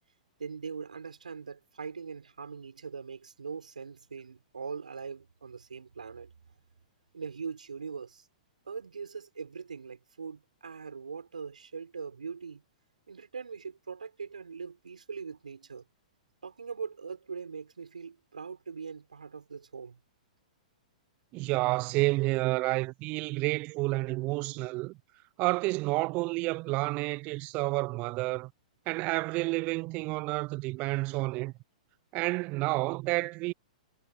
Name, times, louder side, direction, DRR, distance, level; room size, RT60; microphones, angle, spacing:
voice 1, 0.4-6.3 7.1-8.3 8.7-12.6 13.1-15.8 16.4-20.0, right 5 dB, 85° right, 5.4 m, -41 dB
voice 2, 21.3-25.0 25.4-28.5 28.9-31.5 32.1-33.5, right 23 dB, 35° right, 0.5 m, -30 dB
hypercardioid pair, 115°, 4 cm